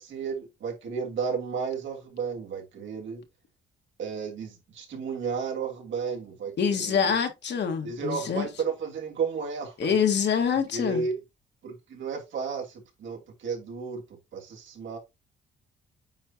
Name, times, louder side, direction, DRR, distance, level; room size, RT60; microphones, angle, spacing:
voice 1, 0.0-3.2 4.0-7.2 7.8-9.9 10.7-11.2 11.6-14.0 14.3-15.0, right 5 dB, 70° right, 3.1 m, -33 dB
voice 2, 6.6-8.5 9.8-11.1, left 7 dB, 60° left, 1.8 m, -25 dB
9.1 x 4.4 x 2.9 m
cardioid pair, 90°, 20 cm